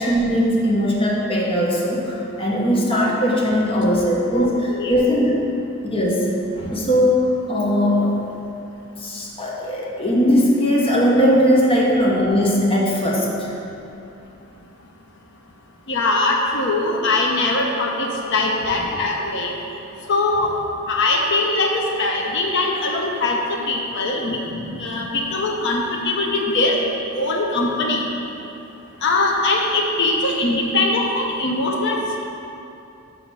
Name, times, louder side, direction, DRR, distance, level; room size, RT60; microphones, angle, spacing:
voice 1, 0.0-4.5 4.9-5.4 5.8-6.3 6.6-8.2 8.9-13.5 24.5-24.8, equal, 30° left, -4 dB, 1.1 m, -19 dB
voice 2, 4.3-5.1 15.9-19.5 20.1-20.5 20.9-24.4 24.8-26.8 27.1-28.0 29.0-32.0, left 2 dB, 60° left, -1 dB, 0.7 m, -21 dB
6.2 x 4.8 x 5.6 m, 2.8 s
head